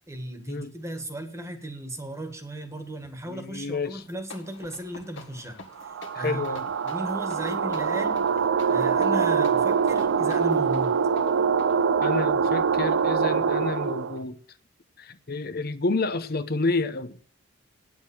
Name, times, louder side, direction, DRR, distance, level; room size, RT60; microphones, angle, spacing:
voice 1, 0.1-5.6 6.2-6.5 6.8-8.3 8.7-11.0, right 1 dB, 15° right, 1.6 m, -35 dB
voice 2, 3.3-4.0 6.1-6.7 12.0-14.4 15.0-17.2, left 3 dB, 50° left, 0.8 m, -29 dB
sound 1, 4.0-14.3, left 3 dB, 65° left, 1.8 m, -47 dB
sound 2, 5.8-14.2, right 6 dB, 60° right, 0.4 m, -24 dB
9.7 x 7.1 x 7.2 m
head